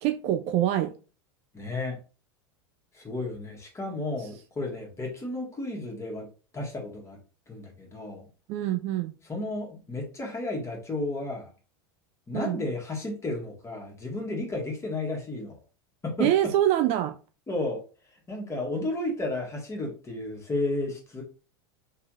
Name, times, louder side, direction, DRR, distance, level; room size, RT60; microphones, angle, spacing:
voice 1, 0.0-0.9 4.2-4.3 8.5-9.2 12.3-12.6 16.2-17.2, right 12 dB, 50° right, 0.4 m, -25 dB
voice 2, 1.5-2.0 2.9-6.3 6.5-7.2 7.5-8.3 9.3-11.5 12.3-15.6 16.0-16.3 17.5-17.8 18.3-21.2, left 2 dB, 20° left, 1.8 m, -32 dB
3.4 x 3.4 x 3.1 m
hypercardioid pair, 95°, 13 cm